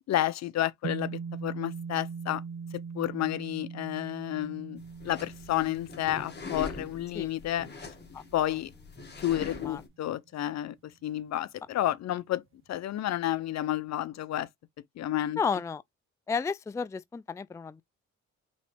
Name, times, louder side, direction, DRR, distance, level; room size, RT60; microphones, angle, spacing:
voice 1, 0.1-2.4 2.9-7.7 8.3-8.7 9.2-12.4 12.7-14.5 15.0-15.4, left 13 dB, 60° left, 0.6 m, -31 dB
sound 1, 0.8-9.3, right 5 dB, 45° right, 0.6 m, -41 dB
sound 2, 4.8-9.9, left 5 dB, 35° left, 1.9 m, -42 dB
voice 2, 15.4-15.8 16.3-17.8, left 5 dB, 10° left, 0.3 m, -32 dB
5.4 x 3.0 x 3.2 m
cardioid pair, 90°, 30 cm